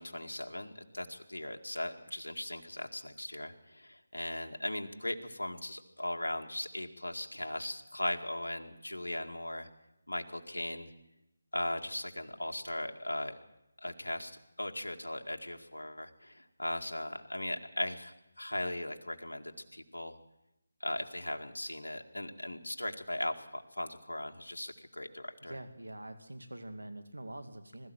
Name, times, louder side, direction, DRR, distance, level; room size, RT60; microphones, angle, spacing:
voice 1, 0.0-9.7 10.1-10.9 11.5-13.4 13.8-20.2 20.8-25.6, left 1 dB, 85° left, 3 dB, 2.2 m, -38 dB
voice 2, 25.4-27.9, right 1 dB, 90° right, 8 dB, 2.4 m, -45 dB
21.5 x 13.5 x 9.1 m, 0.87 s
figure-of-eight pair, 160°, 0 cm